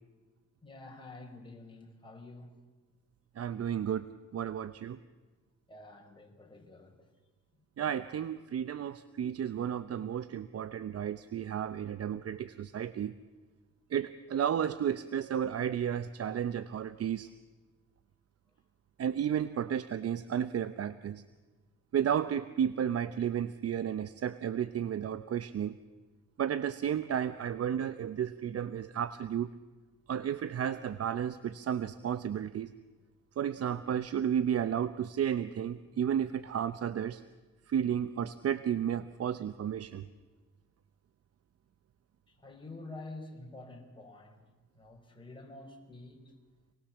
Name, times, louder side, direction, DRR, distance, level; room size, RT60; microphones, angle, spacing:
voice 1, 0.6-2.5 5.7-7.1 42.3-44.4 44.7-46.2, left 2 dB, 15° left, 1 dB, 4.9 m, -48 dB
voice 2, 3.4-5.0 7.8-13.1 13.9-17.3 19.0-21.2 21.9-25.8 26.4-29.5 30.1-32.7 33.4-37.2 37.7-40.1, right 9 dB, 55° right, 13 dB, 0.8 m, -32 dB
26.5 x 19.5 x 7.2 m, 1.3 s
cardioid pair, 90°, 30 cm